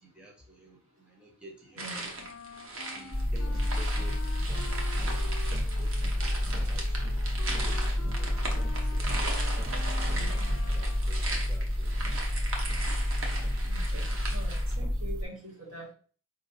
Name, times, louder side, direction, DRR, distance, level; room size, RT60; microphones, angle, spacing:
voice 1, 0.0-2.3 2.9-4.2 4.7-7.1 7.6-9.3 9.8-10.5 10.7-11.9, right 1 dB, 5° right, 0.5 m, -52 dB
sound 1, 1.8-14.7, right 2 dB, 70° right, 0.9 m, -39 dB
voice 2, 1.8-2.1 10.1-10.6 13.6-15.9, right 1 dB, 85° right, 1.7 m, -44 dB
Wind instrument woodwind instrument, 2.2-11.2, left 5 dB, 60° left, 0.3 m, -47 dB
sound 2, 3.1-15.2, left 1 dB, 50° right, 1.1 m, -29 dB
4.8 x 2.8 x 2.7 m
head